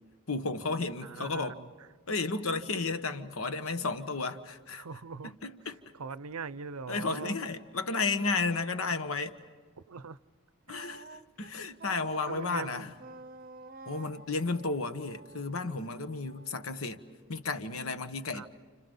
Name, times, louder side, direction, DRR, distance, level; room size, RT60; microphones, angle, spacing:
voice 1, 0.3-1.6 2.1-4.8 5.2-5.8 6.9-9.4 10.7-12.9 13.8-17.0 17.3-18.5, left 3 dB, 70° left, 1.3 m, -33 dB
voice 2, 1.0-1.7 4.8-5.3 6.0-7.4 9.9-10.2 10.7-10.9 12.3-12.9 18.3-18.5, right 5 dB, 80° right, 0.7 m, -41 dB
Wind instrument woodwind instrument, 10.7-17.6, right 3 dB, 40° right, 0.7 m, -50 dB
30.0 x 30.0 x 5.5 m
head